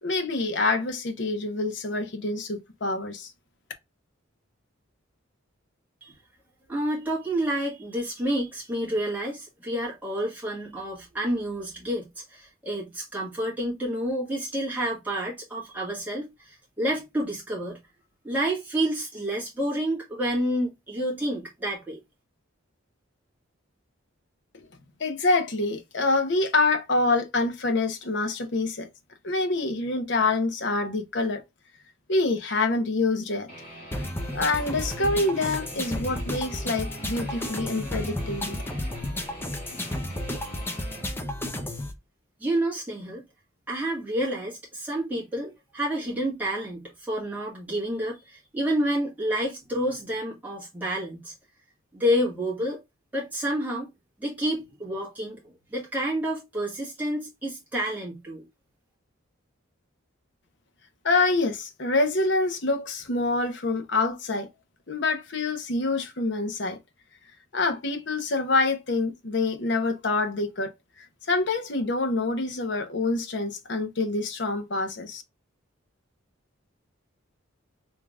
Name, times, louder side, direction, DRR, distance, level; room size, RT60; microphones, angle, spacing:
voice 1, 0.0-3.3 24.5-24.6 25.0-28.9 29.2-31.4 32.1-33.5 34.3-38.6 61.0-64.5 64.9-66.8 67.5-70.7 71.3-75.2, left 3 dB, 60° left, 0.9 m, -26 dB
voice 2, 6.7-17.8 18.2-22.0 42.4-43.2 43.7-51.3 51.9-52.8 53.1-53.9 54.2-55.4 55.7-58.4, right 1 dB, 10° right, 1.6 m, -29 dB
Guitar, 33.5-41.1, equal, 30° left, 2.2 m, -43 dB
sound 1, 33.9-41.9, left 1 dB, 10° left, 0.6 m, -32 dB
3.7 x 3.5 x 2.3 m
head